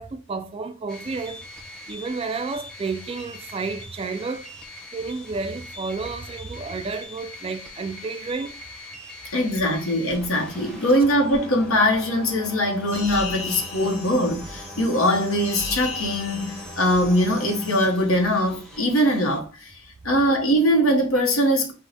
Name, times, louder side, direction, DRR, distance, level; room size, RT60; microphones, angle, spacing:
voice 1, 0.0-1.4 1.9-4.5 4.9-8.6, right 4 dB, 25° right, 0.3 m, -31 dB
sound 1, 0.9-19.4, left 1 dB, 5° left, 0.8 m, -42 dB
voice 2, 9.3-19.7 20.0-21.7, equal, 70° left, 0.9 m, -21 dB
sound 2, 12.9-17.9, left 3 dB, 35° left, 1.8 m, -36 dB
4.5 x 2.1 x 4.0 m
head